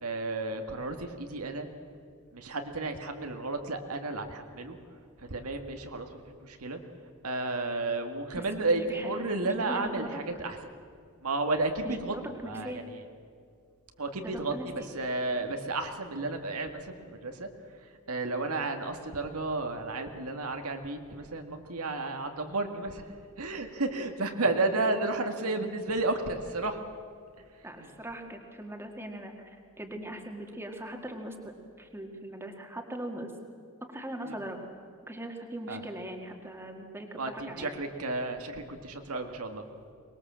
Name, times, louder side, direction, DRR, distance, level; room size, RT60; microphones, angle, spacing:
voice 1, 0.0-1.7 2.3-4.8 5.2-6.8 7.2-10.6 11.2-12.1 12.4-13.0 14.0-17.5 18.1-23.1 23.4-26.8 27.8-27.9 34.3-34.4 35.7-35.8 37.2-39.6, right 2 dB, 80° right, 5 dB, 1.8 m, -32 dB
voice 2, 8.3-9.1 9.4-10.2 11.8-12.8 14.2-14.9 27.6-31.4 31.8-33.3 33.9-34.6 35.1-37.7, right 1 dB, 10° right, 3 dB, 2.0 m, -40 dB
23.0 x 20.5 x 7.5 m, 2.3 s
head